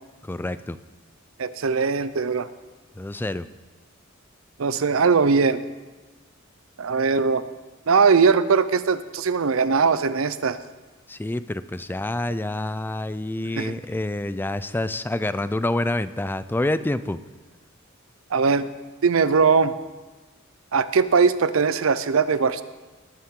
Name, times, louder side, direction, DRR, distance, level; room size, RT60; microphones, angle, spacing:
voice 1, 0.2-0.8 3.0-3.5 11.1-17.2, left 1 dB, 10° left, 14 dB, 0.3 m, -27 dB
voice 2, 1.4-2.5 4.6-5.6 6.8-7.4 7.9-10.6 13.6-13.7 18.3-18.7 19.0-19.7 20.7-22.6, right 5 dB, 75° right, 14 dB, 0.6 m, -20 dB
19.0 x 8.6 x 3.8 m, 1.3 s
head